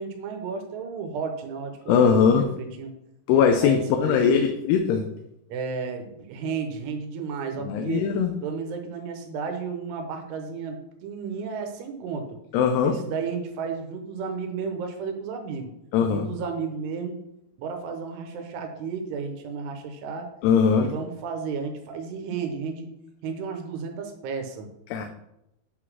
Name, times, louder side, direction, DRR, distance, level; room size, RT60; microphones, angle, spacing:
voice 1, 0.0-2.9 3.6-4.4 5.5-8.1 8.4-12.3 12.8-15.7 16.1-17.2 17.6-20.3 20.8-22.9 23.2-24.7, right 5 dB, 85° right, 4 dB, 3.0 m, -33 dB
voice 2, 1.9-2.5 3.3-5.0 7.6-8.3 12.5-13.0 15.9-16.3 20.4-20.9 24.9-25.1, left 6 dB, 90° left, 4 dB, 2.8 m, -20 dB
8.4 x 4.0 x 6.1 m, 0.82 s
omnidirectional pair, 4.6 m